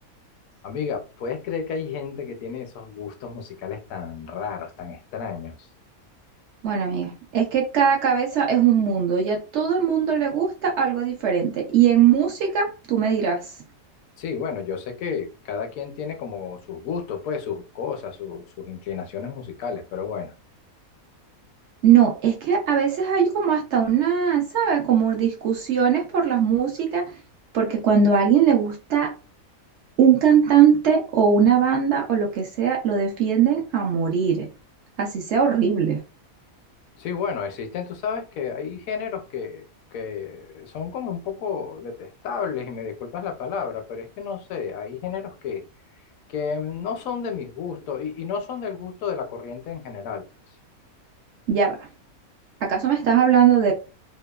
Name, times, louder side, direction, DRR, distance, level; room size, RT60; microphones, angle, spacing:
voice 1, 0.6-5.7 14.2-20.3 37.0-39.7 39.9-45.6 46.3-50.2, left 6 dB, 75° left, 1.0 m, -31 dB
voice 2, 6.6-13.5 21.8-27.1 27.5-29.1 30.0-34.5 35.0-36.0 51.5-51.9 52.6-53.7, right 7 dB, 65° right, 0.7 m, -20 dB
2.8 x 2.2 x 2.2 m
omnidirectional pair, 1.5 m